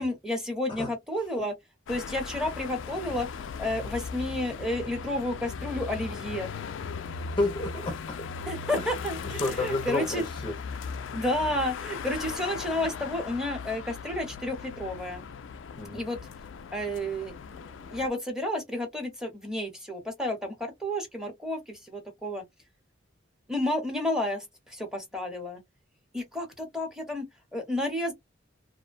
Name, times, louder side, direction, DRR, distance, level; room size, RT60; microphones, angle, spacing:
voice 1, 0.0-1.5 1.9-3.3 3.6-6.5 8.5-10.2 11.1-15.3 15.9-16.2 16.7-22.4 23.5-25.6 26.1-27.2 27.5-28.1, left 1 dB, 5° right, 0.9 m, -31 dB
sound 1, 1.9-18.1, left 5 dB, 65° left, 0.4 m, -38 dB
voice 2, 7.4-8.3 8.8-8.9 9.2-10.6 15.7-16.0, left 2 dB, 25° left, 0.6 m, -31 dB
2.6 x 2.1 x 2.5 m
head